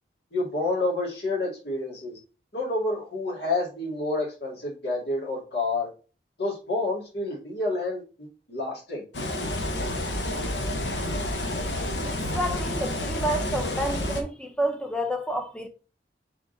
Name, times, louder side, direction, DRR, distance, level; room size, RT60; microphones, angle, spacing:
voice 1, 0.3-2.2 2.5-5.9 6.4-8.0 8.5-9.0, left 2 dB, 70° left, 2.0 m, -28 dB
sound 1, 9.1-14.2, left 1 dB, 85° left, 0.8 m, -29 dB
voice 2, 12.0-15.7, right 1 dB, 5° left, 0.5 m, -29 dB
3.7 x 3.6 x 3.8 m
head